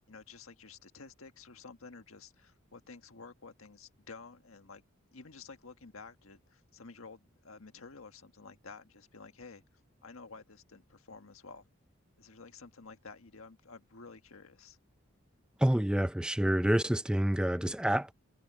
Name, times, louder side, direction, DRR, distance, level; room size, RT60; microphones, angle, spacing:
voice 1, 0.1-4.8 5.1-9.6 10.0-11.7 12.2-14.8, left 4 dB, 85° left, 1.6 m, -51 dB
voice 2, 15.6-18.1, right 1 dB, 5° right, 0.4 m, -28 dB
head